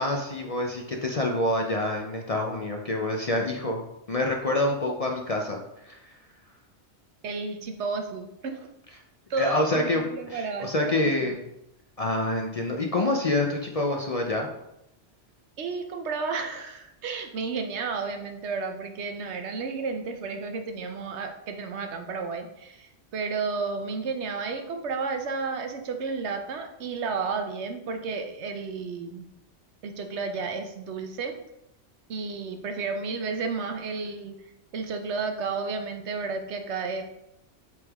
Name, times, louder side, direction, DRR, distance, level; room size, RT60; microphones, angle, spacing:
voice 1, 0.0-3.8 4.1-6.1 9.4-11.4 12.0-14.5, left 1 dB, 40° left, 1 dB, 0.5 m, -27 dB
voice 2, 7.2-8.7 9.3-11.3 15.6-29.3 29.8-31.3 32.1-34.4 34.7-37.0, right 4 dB, 70° right, 5 dB, 1.1 m, -32 dB
7.8 x 3.5 x 3.5 m, 0.85 s
omnidirectional pair, 1.2 m